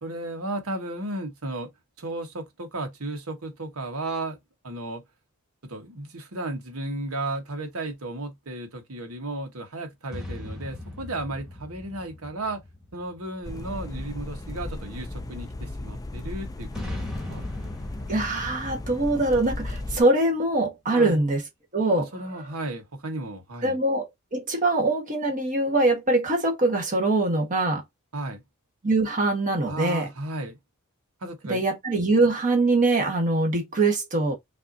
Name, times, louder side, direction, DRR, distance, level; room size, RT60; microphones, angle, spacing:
voice 1, 0.0-1.7 2.0-4.4 4.6-5.0 5.6-12.6 12.9-17.0 17.3-17.5 20.9-21.2 21.9-23.8 28.1-28.4 29.7-30.6 31.2-31.6, right 2 dB, 75° right, 1.3 m, -34 dB
sound 1, 10.1-13.8 16.7-20.5, left 1 dB, 5° right, 1.4 m, -39 dB
sound 2, 13.4-20.0, left 2 dB, 15° left, 0.4 m, -36 dB
voice 2, 18.1-21.4 21.7-22.1 23.6-27.8 28.8-30.1 31.5-34.3, right 2 dB, 35° right, 1.4 m, -23 dB
5.5 x 2.7 x 2.6 m
head